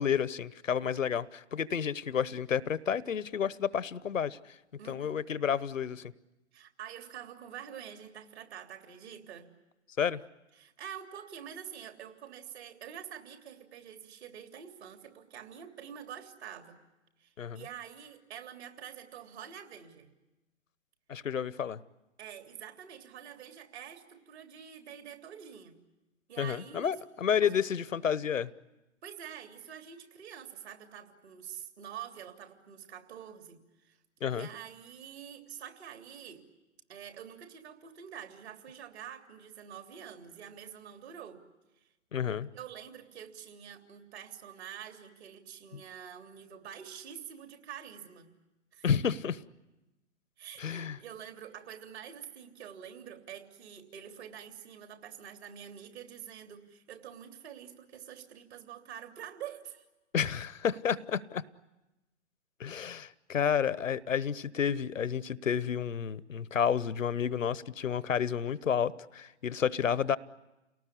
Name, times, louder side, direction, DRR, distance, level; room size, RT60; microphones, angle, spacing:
voice 1, 0.0-4.4 4.9-6.1 10.0-10.2 17.4-17.6 21.1-21.8 26.4-28.5 34.2-34.5 42.1-42.5 45.7-45.8 48.8-49.4 50.6-51.0 60.1-61.4 62.6-70.2, left 8 dB, 80° left, 1.0 m, -30 dB
voice 2, 4.8-5.2 6.5-9.5 10.6-16.8 17.2-20.1 22.2-25.8 26.3-27.0 27.4-27.5 29.0-34.0 34.3-36.4 36.9-41.4 42.5-48.3 48.7-48.9 50.4-59.8, right 9 dB, 55° right, 3.3 m, -47 dB
29.5 x 18.5 x 10.0 m
figure-of-eight pair, 130°, 38 cm